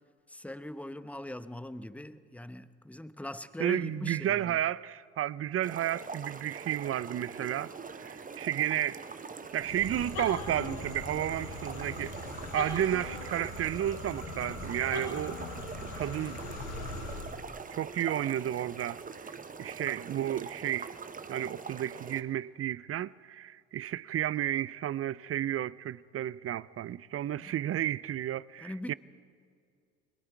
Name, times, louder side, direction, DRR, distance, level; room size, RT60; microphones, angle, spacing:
voice 1, 0.3-4.6 27.4-27.5 28.6-28.9, left 1 dB, 5° left, 1.0 m, -41 dB
voice 2, 3.6-7.7 8.0-9.0 9.5-12.1 12.5-15.4 16.0-16.4 17.7-19.0 19.2-19.3 19.6-20.9 21.3-28.9, right 12 dB, 40° right, 0.6 m, -32 dB
sound 1, 5.6-22.2, right 5 dB, 20° right, 1.1 m, -44 dB
sound 2, 9.5-17.4, left 3 dB, 80° left, 7.8 m, -40 dB
29.5 x 22.0 x 4.7 m
hypercardioid pair, 70°, 37 cm